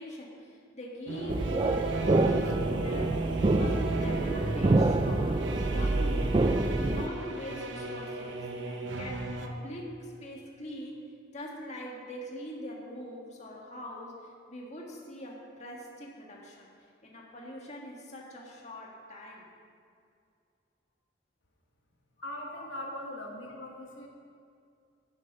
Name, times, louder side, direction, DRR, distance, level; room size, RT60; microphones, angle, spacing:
voice 1, 0.0-6.6 6.9-11.0 11.3-16.7 17.0-19.5 22.6-22.7, equal, 35° left, -2 dB, 1.6 m, -43 dB
sound 1, 1.1-9.5, right 2 dB, 70° right, 0.9 m, -35 dB
sound 2, 1.3-7.1, right 2 dB, 25° right, 0.3 m, -27 dB
voice 2, 22.2-24.1, left 1 dB, 75° left, 0 dB, 1.3 m, -40 dB
9.6 x 9.2 x 5.5 m, 2.3 s
head